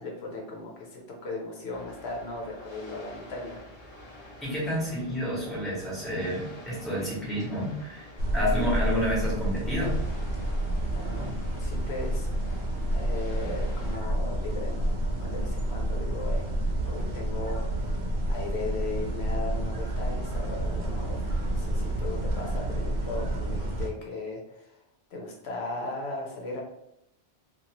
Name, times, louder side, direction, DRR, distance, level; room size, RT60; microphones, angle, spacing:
voice 1, 0.0-3.6 10.9-11.3 11.6-12.3 12.8-14.9 15.2-16.4 16.8-17.6 18.3-24.7 25.1-26.6, left 2 dB, 75° left, -1 dB, 0.9 m, -37 dB
sound 1, 1.7-14.0, left 1 dB, 40° left, 0.9 m, -48 dB
voice 2, 4.4-8.1 8.3-10.0 11.2-11.3, equal, ahead, -7 dB, 1.0 m, -30 dB
sound 2, 8.2-23.9, right 1 dB, 75° right, 0.8 m, -29 dB
2.6 x 2.4 x 2.9 m, 0.78 s
omnidirectional pair, 1.1 m